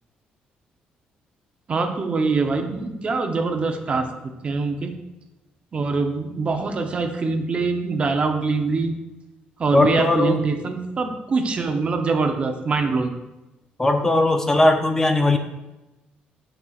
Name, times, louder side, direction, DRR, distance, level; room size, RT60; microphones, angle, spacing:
voice 1, 1.7-4.1 4.4-4.9 5.7-8.9 9.6-13.1, right 4 dB, 35° right, 5 dB, 0.8 m, -23 dB
voice 2, 9.7-10.4 13.8-15.4, left 2 dB, 15° left, 5 dB, 0.5 m, -18 dB
8.3 x 5.6 x 2.4 m, 1.0 s
cardioid pair, 110°, 3 cm